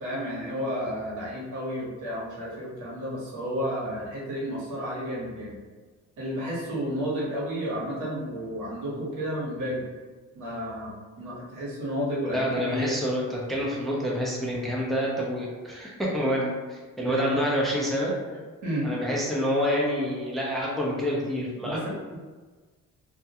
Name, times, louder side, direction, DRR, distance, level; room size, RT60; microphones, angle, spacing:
voice 1, 0.0-5.6 6.2-9.8 10.3-12.9 16.2-16.3 17.0-17.4 18.6-18.9 19.6-19.7 21.6-22.2, equal, 85° right, -5 dB, 1.0 m, -32 dB
voice 2, 12.3-18.1 18.8-21.9, equal, ahead, -4 dB, 0.5 m, -27 dB
2.3 x 2.1 x 2.8 m, 1.3 s
cardioid pair, 90°, 30 cm